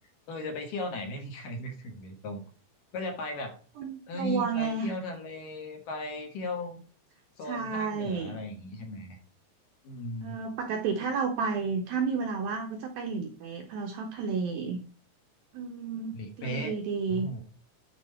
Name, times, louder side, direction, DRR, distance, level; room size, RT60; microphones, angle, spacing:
voice 1, 0.3-2.4 2.9-3.6 4.1-6.8 7.4-9.2 9.8-10.4 16.1-16.8 17.1-17.4, left 1 dB, 60° left, 3 dB, 2.6 m, -36 dB
voice 2, 3.8-5.0 7.5-8.3 10.2-14.8 15.5-17.3, right 5 dB, 75° right, 3 dB, 2.2 m, -31 dB
10.0 x 4.6 x 4.3 m, 0.38 s
omnidirectional pair, 5.2 m